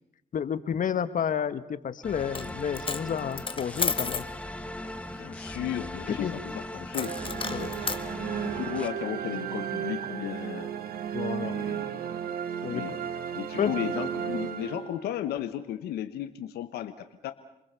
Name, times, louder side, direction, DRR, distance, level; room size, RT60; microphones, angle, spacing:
voice 1, 0.3-4.2 6.1-6.3 7.5-7.7 11.1-11.6 12.6-12.8 13.6-13.7, left 8 dB, 55° left, 12 dB, 1.5 m, -30 dB
sound 1, 2.0-8.9, left 1 dB, 10° left, 1.7 m, -39 dB
Coin (dropping), 2.2-2.5 2.7-4.3 6.9-8.0, left 4 dB, 35° left, 1.7 m, -32 dB
voice 2, 5.2-7.2 8.4-10.7 11.4-12.1 12.7-13.0 13.3-17.3, left 11 dB, 80° left, 9 dB, 1.2 m, -35 dB
sound 2, 6.9-15.3, right 8 dB, 70° right, 1.7 m, -34 dB
28.0 x 21.0 x 7.0 m, 0.85 s
supercardioid pair, 65°, 16 cm